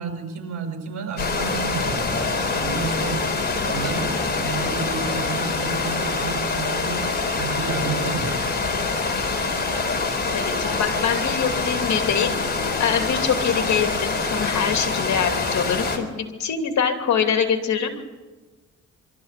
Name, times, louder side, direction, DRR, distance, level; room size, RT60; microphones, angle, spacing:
voice 1, 0.0-2.2 2.5-3.2 3.6-7.1 7.3-8.4, right 5 dB, 60° right, 4 dB, 6.1 m, -31 dB
sound 1, 1.2-16.0, left 3 dB, 35° left, 3.8 m, -25 dB
voice 2, 10.3-12.3 12.8-18.0, left 7 dB, 65° left, 5 dB, 2.8 m, -24 dB
24.0 x 13.5 x 8.3 m, 1.3 s
cardioid pair, 90°, 30 cm